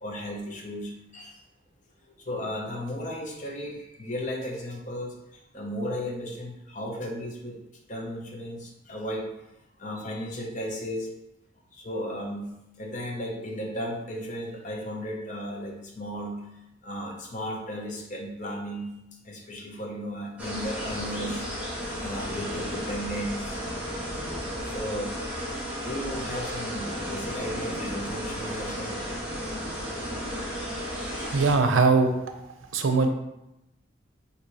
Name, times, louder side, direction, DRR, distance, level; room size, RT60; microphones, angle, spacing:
voice 1, 0.0-1.4 2.1-7.6 7.9-9.3 9.8-11.1 11.7-16.4 16.8-18.9 19.2-21.5 21.8-23.6 24.7-25.2 25.8-29.2 29.7-30.1, equal, 40° left, 0 dB, 0.7 m, -35 dB
sound 1, 20.4-31.5, equal, 5° right, 0.8 m, -33 dB
voice 2, 31.3-32.2 32.7-33.1, right 4 dB, 85° right, 6 dB, 0.5 m, -21 dB
4.0 x 2.8 x 4.6 m, 0.90 s
head